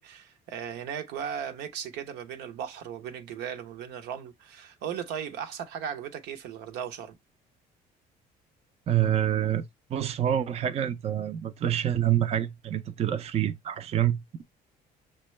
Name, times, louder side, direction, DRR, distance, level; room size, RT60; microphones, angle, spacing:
voice 1, 0.0-7.2, right 8 dB, 85° right, 0.7 m, -37 dB
voice 2, 8.9-9.6 9.9-14.2, right 11 dB, 40° right, 0.4 m, -26 dB
6.0 x 2.2 x 3.0 m
cardioid pair, 110°, 17 cm